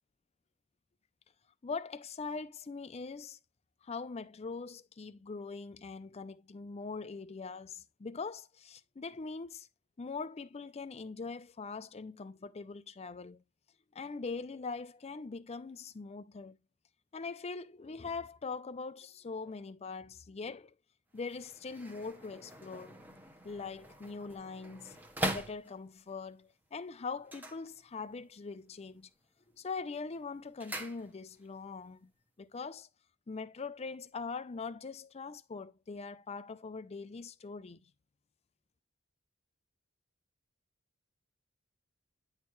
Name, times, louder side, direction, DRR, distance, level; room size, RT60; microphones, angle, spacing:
voice 1, 1.6-3.4 3.8-9.7 10.0-13.4 13.9-16.6 17.1-20.7 21.1-23.0 23.4-25.0 25.3-29.1 29.6-32.1 32.4-32.9 33.3-37.9, left 4 dB, 30° left, 0.5 m, -42 dB
sound 1, 21.1-26.1 27.2-28.3 28.6-29.1 29.5-31.5 31.8-31.9, right 1 dB, 10° right, 1.1 m, -42 dB
9.7 x 4.4 x 3.1 m
head